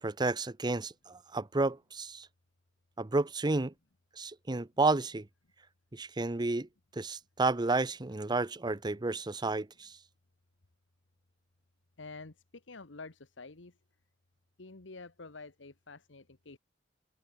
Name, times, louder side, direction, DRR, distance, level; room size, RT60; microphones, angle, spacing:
voice 1, 0.0-2.3 3.0-3.7 4.2-5.3 5.9-10.0, right 3 dB, 25° right, 0.7 m, -31 dB
voice 2, 12.0-13.7 14.6-16.6, left 3 dB, 75° left, 1.4 m, -48 dB
open air
head